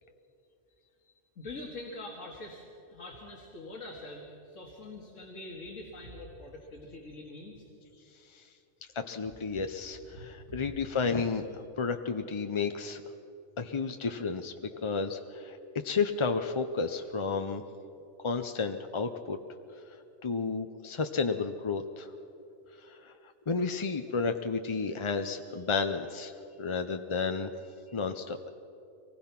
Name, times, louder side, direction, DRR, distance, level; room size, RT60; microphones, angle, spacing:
voice 1, 1.4-2.6 2.9-7.7 10.1-10.3, left 2 dB, 85° left, -1 dB, 2.3 m, -44 dB
voice 2, 8.9-13.0 13.6-14.5 14.8-15.6 15.8-17.6 18.2-19.4 20.2-22.1 22.8-23.1 23.5-26.3 26.6-27.5 27.9-28.5, left 4 dB, 35° left, 7 dB, 0.5 m, -32 dB
24.5 x 19.5 x 5.9 m, 2.8 s
omnidirectional pair, 1.3 m